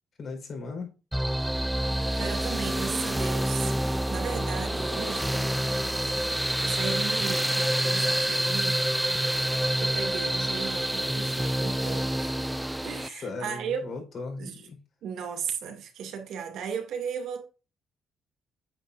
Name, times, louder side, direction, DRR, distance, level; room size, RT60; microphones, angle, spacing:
voice 1, 0.2-0.9 13.2-14.8, left 3 dB, 55° left, 4.4 m, -37 dB
sound 1, 1.1-13.1, right 1 dB, 5° right, 0.4 m, -27 dB
voice 2, 2.1-5.5 6.6-9.2 9.8-12.5 12.8-13.8 14.4-14.6 15.0-17.5, right 7 dB, 80° right, 2.5 m, -36 dB
8.9 x 7.5 x 2.6 m
cardioid pair, 90°, 0 cm